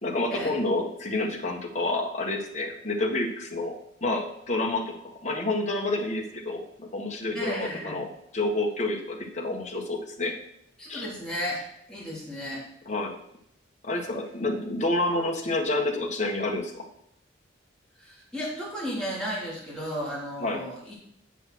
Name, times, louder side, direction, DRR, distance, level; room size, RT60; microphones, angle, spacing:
voice 1, 0.0-3.7 4.0-10.3 10.9-11.1 12.8-13.2 13.8-16.9 20.4-20.7, left 2 dB, 35° left, 1 dB, 1.5 m, -29 dB
voice 2, 7.3-8.0 10.8-11.6 11.9-12.6 18.0-20.9, equal, 5° left, -7 dB, 3.5 m, -34 dB
8.3 x 7.0 x 6.2 m, 0.75 s
head